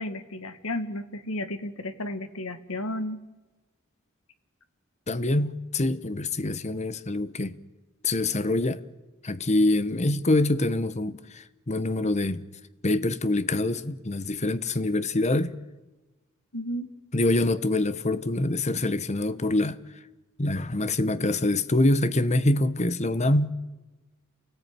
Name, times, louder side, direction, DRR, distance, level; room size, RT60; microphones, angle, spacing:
voice 1, 0.0-3.2 16.5-16.9, left 1 dB, 75° left, 1.8 m, -33 dB
voice 2, 5.1-7.6 8.0-8.8 9.2-12.4 12.8-15.5 17.1-19.8 20.4-23.5, left 2 dB, 30° left, 1.0 m, -25 dB
29.0 x 18.5 x 9.7 m
head